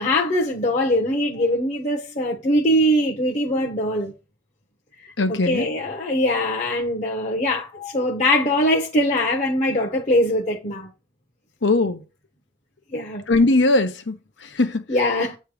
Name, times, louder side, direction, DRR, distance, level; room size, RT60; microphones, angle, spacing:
voice 1, 0.0-4.1 5.3-10.9 12.9-13.2 14.9-15.4, left 1 dB, 40° left, 1.1 m, -22 dB
voice 2, 5.2-5.7 11.6-12.0 13.3-14.8, left 2 dB, 75° left, 1.0 m, -20 dB
8.1 x 3.3 x 4.9 m
head